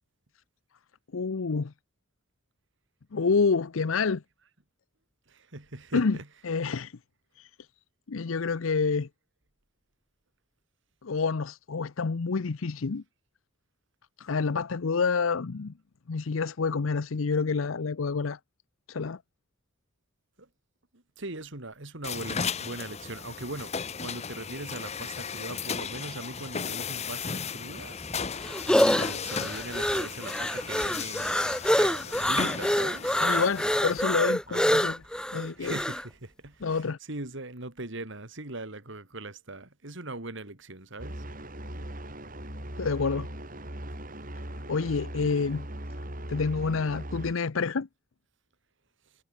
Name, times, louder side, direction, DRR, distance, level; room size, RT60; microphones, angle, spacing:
voice 1, 1.1-1.7 3.1-4.2 5.9-6.2 6.4-7.0 7.4-7.5 8.1-9.1 11.0-13.0 14.2-15.7 16.1-18.4 18.9-19.2 33.2-35.0 35.3-35.7 36.6-37.0 42.8-43.3 44.7-45.7 46.3-47.9, left 4 dB, 75° left, 0.6 m, -28 dB
voice 2, 5.3-6.3 20.4-20.5 20.9-28.0 28.6-31.5 31.7-33.3 34.5-34.8 35.1-35.2 35.6-41.2 41.7-42.0, right 2 dB, 65° right, 2.9 m, -40 dB
sound 1, 22.0-34.0, left 6 dB, 30° left, 0.8 m, -36 dB
sound 2, 27.8-36.0, left 1 dB, 5° left, 1.0 m, -26 dB
sound 3, 41.0-47.3, right 1 dB, 40° right, 6.2 m, -39 dB
head